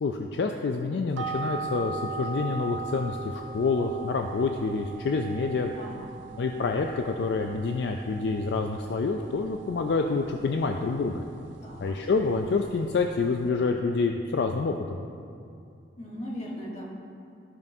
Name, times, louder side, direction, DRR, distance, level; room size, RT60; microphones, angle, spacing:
voice 1, 0.0-5.7 6.4-11.2 11.8-15.0, left 4 dB, 60° left, 4 dB, 0.3 m, -27 dB
sound 1, 1.1-13.5, right 5 dB, 70° right, 0.4 m, -40 dB
voice 2, 5.7-6.2 11.6-11.9 16.0-16.8, equal, 35° left, -3 dB, 1.3 m, -38 dB
14.0 x 5.3 x 2.7 m, 2.5 s
head